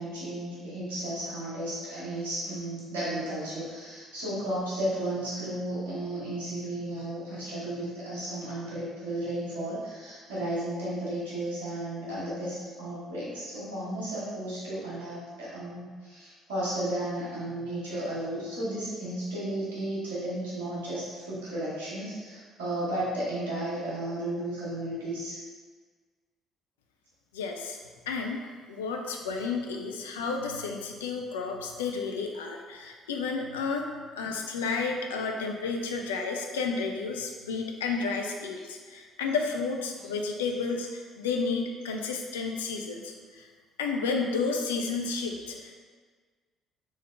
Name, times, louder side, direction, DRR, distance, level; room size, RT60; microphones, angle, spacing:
voice 1, 0.0-25.4, right 1 dB, 75° right, -9 dB, 1.3 m, -34 dB
voice 2, 27.3-27.8 28.1-28.4 28.7-43.5 43.8-45.7, left 4 dB, 75° left, 2 dB, 0.3 m, -31 dB
3.4 x 3.3 x 3.3 m, 1.5 s
figure-of-eight pair, 50°, 0 cm